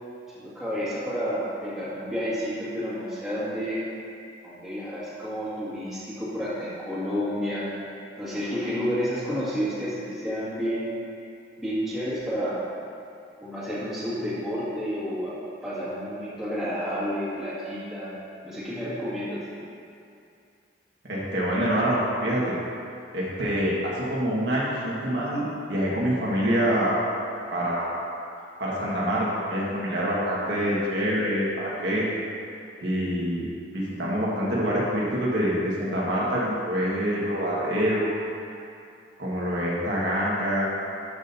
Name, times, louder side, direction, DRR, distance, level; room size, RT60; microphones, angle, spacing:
voice 1, 0.3-3.8 4.4-7.7 8.2-10.9 11.6-12.7 13.4-18.1 18.4-19.4, equal, ahead, -12 dB, 2.0 m, -30 dB
voice 2, 21.0-22.5 23.1-27.0 27.5-28.0 28.6-32.1 32.8-38.2 39.2-40.7, equal, 60° right, -6 dB, 1.5 m, -26 dB
12.5 x 6.2 x 2.7 m, 2.5 s
head